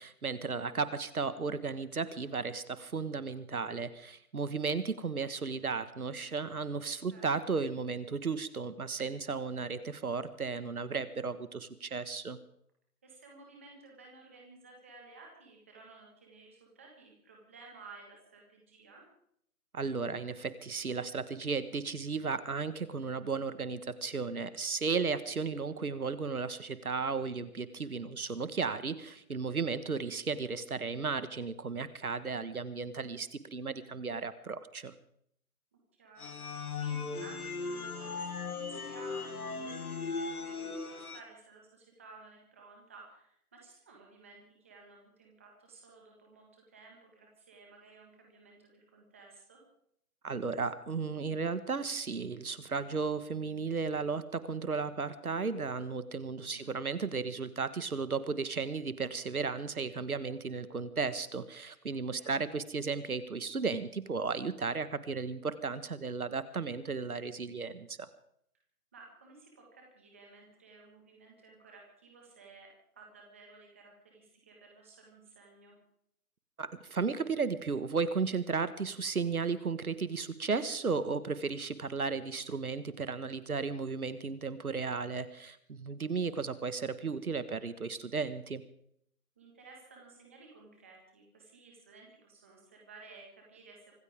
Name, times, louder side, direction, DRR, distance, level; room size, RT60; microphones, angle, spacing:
voice 1, 0.0-12.4 19.7-34.9 50.2-68.1 76.6-88.6, right 4 dB, 65° right, 13 dB, 1.6 m, -34 dB
voice 2, 0.5-0.8 7.1-7.2 13.0-19.0 25.7-25.8 35.9-49.6 56.3-56.7 62.2-62.4 68.9-75.8 89.4-93.9, right 3 dB, 10° right, -1 dB, 1.6 m, -55 dB
sound 1, 36.2-41.2, left 4 dB, 70° left, 2.2 m, -38 dB
25.0 x 15.0 x 3.6 m, 0.70 s
hypercardioid pair, 175°, 46 cm